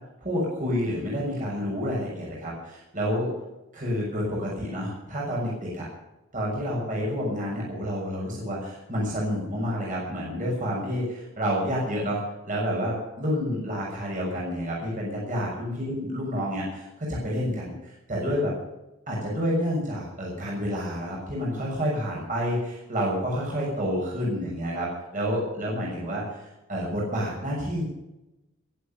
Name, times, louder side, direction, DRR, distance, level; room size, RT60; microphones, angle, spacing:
voice 1, 0.2-3.3 3.7-5.9 6.3-18.5 19.1-27.8, equal, 40° right, -4 dB, 6.6 m, -29 dB
22.0 x 8.4 x 7.0 m, 0.94 s
head